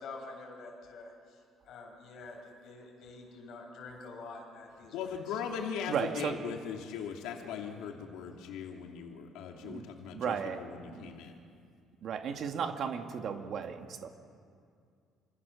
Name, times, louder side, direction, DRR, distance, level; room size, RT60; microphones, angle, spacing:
voice 1, 0.0-1.4 1.6-5.4, left 3 dB, 50° left, 0 dB, 7.2 m, -47 dB
voice 2, 4.9-11.3, left 7 dB, 90° left, 1 dB, 2.5 m, -39 dB
voice 3, 5.9-6.4 9.6-10.6 10.9-11.1 12.0-14.1, right 7 dB, 45° right, 5 dB, 2.0 m, -35 dB
28.5 x 26.5 x 7.1 m, 2.3 s
cardioid pair, 150°, 0 cm